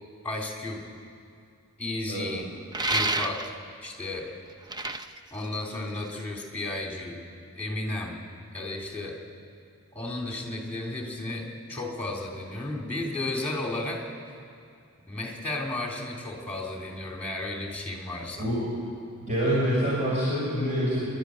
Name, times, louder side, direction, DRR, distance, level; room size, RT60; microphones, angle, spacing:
voice 1, 0.2-0.8 1.8-2.4 2.9-3.4 3.8-4.3 5.3-7.2 7.5-8.1 8.5-9.2 9.9-14.3 15.1-18.5, left 2 dB, 5° left, 0 dB, 3.4 m, -33 dB
voice 2, 2.1-2.4 18.4-18.6 19.3-21.0, equal, 35° right, -7 dB, 6.1 m, -26 dB
sound 1, 2.7-3.7 4.5-6.2, right 2 dB, 20° right, 0.7 m, -29 dB
25.0 x 12.0 x 10.0 m, 2.4 s
head